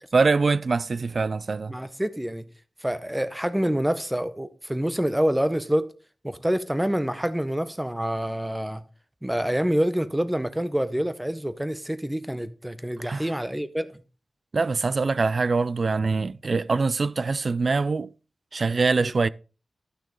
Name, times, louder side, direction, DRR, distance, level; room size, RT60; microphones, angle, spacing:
voice 1, 0.1-1.7 13.1-13.2 14.5-18.1 18.5-19.3, right 4 dB, 45° right, 0.3 m, -23 dB
voice 2, 1.7-2.4 2.8-5.9 6.2-8.8 9.2-14.0 19.0-19.1, equal, 5° right, 0.7 m, -27 dB
12.5 x 6.1 x 3.8 m
wide cardioid pair, 140°, 0 cm